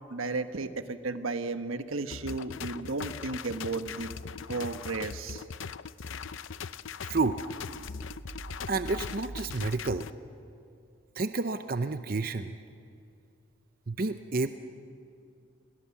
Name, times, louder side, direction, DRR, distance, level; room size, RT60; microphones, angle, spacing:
voice 1, 0.1-4.1 4.5-5.4, right 3 dB, 85° right, 9 dB, 1.2 m, -34 dB
sound 1, 2.1-10.1, left 6 dB, 75° left, 0.6 m, -40 dB
voice 2, 7.0-7.4 8.7-10.1 11.2-12.6 13.9-14.5, right 3 dB, 45° right, 9 dB, 0.7 m, -30 dB
29.5 x 22.5 x 7.2 m, 2.4 s
head